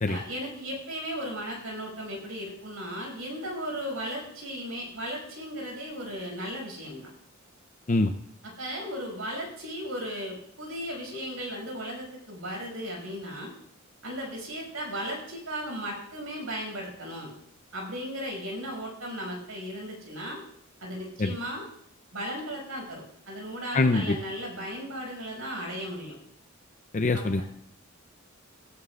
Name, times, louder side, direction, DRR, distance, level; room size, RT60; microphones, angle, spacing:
voice 1, 0.1-7.0 8.6-13.5 14.0-17.3 17.7-20.4 20.8-21.6 22.1-26.2 27.1-27.4, equal, 80° right, -1 dB, 6.2 m, -36 dB
voice 2, 23.7-24.1 26.9-27.4, left 2 dB, 35° left, 7 dB, 0.6 m, -24 dB
18.0 x 14.5 x 2.5 m, 0.71 s
head